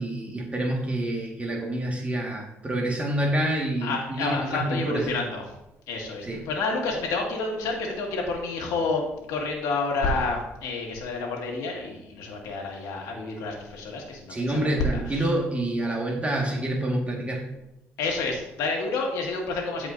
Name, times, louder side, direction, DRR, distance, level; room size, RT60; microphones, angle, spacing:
voice 1, 0.0-5.1 6.2-6.5 14.3-17.4, right 1 dB, 25° right, -1 dB, 1.7 m, -27 dB
voice 2, 3.8-5.4 5.9-15.3 18.0-19.9, left 3 dB, 85° left, 0 dB, 1.9 m, -29 dB
13.5 x 4.9 x 2.6 m, 0.91 s
supercardioid pair, 70°, 6 cm